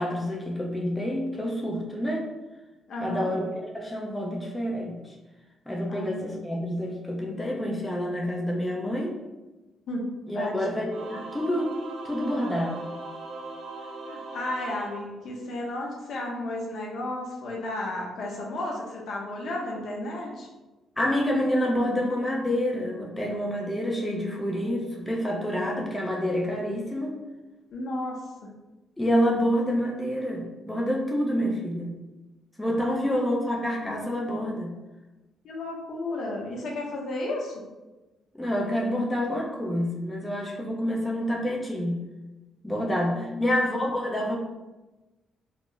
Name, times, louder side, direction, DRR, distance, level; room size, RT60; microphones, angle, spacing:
voice 1, 0.0-2.3 3.0-5.2 5.7-9.1 10.3-11.8 12.0-12.8 21.0-27.2 29.0-31.9 32.6-34.7 38.3-42.0 42.6-44.4, equal, 10° left, -2 dB, 0.5 m, -28 dB
voice 2, 2.9-3.3 5.9-6.3 9.9-10.1 10.3-10.8 14.0-20.5 27.7-28.5 32.9-33.2 35.4-37.6 43.1-43.6, left 1 dB, 65° left, -2 dB, 0.7 m, -33 dB
Singing / Musical instrument, 10.9-15.7, right 3 dB, 75° right, 0.5 m, -40 dB
2.4 x 2.0 x 3.7 m, 1.1 s
cardioid pair, 90°, 0 cm